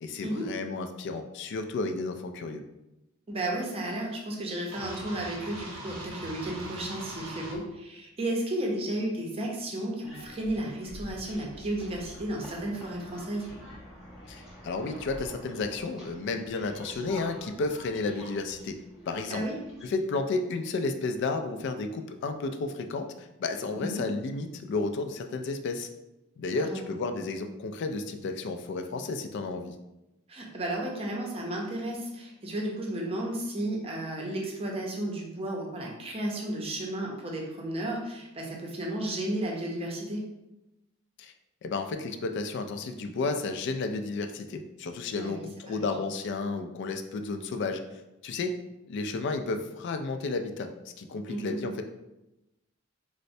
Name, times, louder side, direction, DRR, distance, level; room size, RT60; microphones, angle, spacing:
voice 1, 0.0-2.6 14.3-18.8 19.1-19.4 19.8-25.9 26.4-29.7 41.2-41.3 41.6-47.8 48.2-48.6 48.9-50.7 51.0-51.8, left 3 dB, 60° left, 6 dB, 0.3 m, -32 dB
voice 2, 3.3-13.5 19.3-19.6 23.8-24.1 26.5-26.9 30.3-40.2 45.1-45.9 51.3-51.6, right 1 dB, 30° right, -1 dB, 0.6 m, -33 dB
sound 1, 4.7-7.6, right 1 dB, 80° right, 0.7 m, -41 dB
sound 2, 10.0-19.9, equal, 5° right, 0.9 m, -47 dB
4.1 x 2.1 x 2.6 m, 0.95 s
head